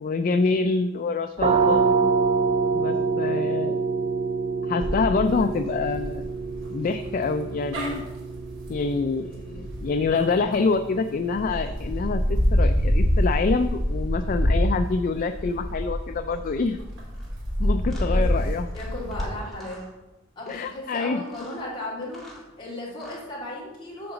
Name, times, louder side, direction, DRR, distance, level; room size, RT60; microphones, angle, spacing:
voice 1, 0.0-1.8 2.7-3.9 4.6-6.3 6.7-8.0 8.7-12.2 12.5-16.8 17.6-18.7 20.5-21.2, left 4 dB, 45° left, 8 dB, 0.3 m, -26 dB
sound 1, 1.4-12.9, right 4 dB, 30° right, 0.4 m, -27 dB
sound 2, 4.8-10.8 11.3-19.2, equal, 80° right, 2.8 m, -26 dB
sound 3, 17.1-17.3 17.9-18.1 18.7-19.3 19.5-19.9 20.4-20.7 21.2-21.6 22.0-22.4 22.9-23.3, left 1 dB, ahead, 1.9 m, -48 dB
voice 2, 17.9-19.9 20.3-24.1, left 1 dB, 25° left, -7 dB, 3.0 m, -36 dB
8.7 x 3.9 x 7.0 m, 1.1 s
head